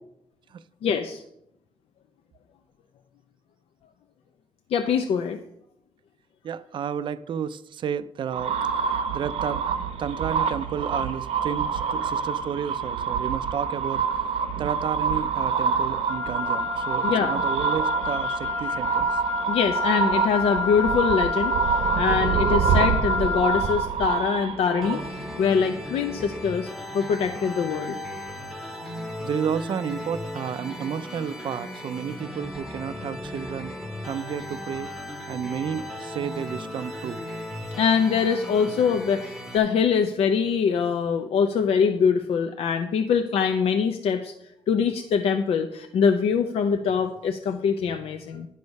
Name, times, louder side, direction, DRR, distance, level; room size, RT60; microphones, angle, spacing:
voice 1, 0.8-1.2 4.7-5.4 17.0-17.4 19.5-26.7 26.9-28.0 37.8-44.3 44.7-48.5, left 6 dB, 70° left, 0.6 m, -23 dB
voice 2, 6.4-9.7 10.0-19.2 29.2-33.7 34.0-34.9 35.3-37.3, right 8 dB, 50° right, 0.4 m, -32 dB
sound 1, 8.3-25.4, right 6 dB, 70° right, 0.8 m, -26 dB
Wind instrument woodwind instrument, 16.1-23.8, left 7 dB, 15° left, 0.6 m, -30 dB
sound 2, 24.8-39.6, left 1 dB, ahead, 0.9 m, -36 dB
11.0 x 6.4 x 5.3 m
wide cardioid pair, 175°, 11 cm